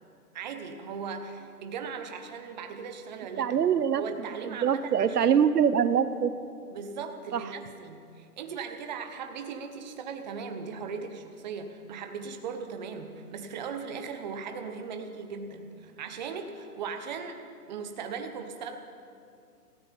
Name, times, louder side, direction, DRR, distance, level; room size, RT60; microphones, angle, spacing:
voice 1, 0.3-3.6 3.9-5.4 6.7-17.4 17.7-18.8, right 5 dB, 30° right, 6 dB, 1.0 m, -38 dB
voice 2, 3.4-4.0 4.4-6.3 7.3-7.4, right 8 dB, 80° right, 13 dB, 0.8 m, -24 dB
17.5 x 14.5 x 5.3 m, 2.4 s
hypercardioid pair, 155°, 47 cm